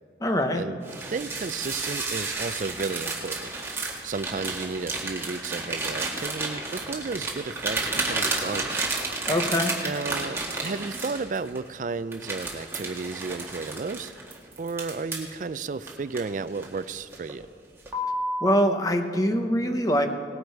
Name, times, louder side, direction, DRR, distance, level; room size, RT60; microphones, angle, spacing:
voice 1, 0.2-0.6 9.3-9.7 18.4-20.1, equal, 20° left, 6 dB, 0.9 m, -23 dB
sound 1, 0.8-11.6 12.1-15.3 15.9-16.8 17.1-17.4 17.9-18.4, right 2 dB, 15° right, 1.6 m, -31 dB
voice 2, 1.1-3.5 4.0-8.8 9.8-14.1 14.6-17.5, right 4 dB, 45° right, 15 dB, 0.4 m, -33 dB
18.5 x 9.9 x 4.6 m, 2.3 s
head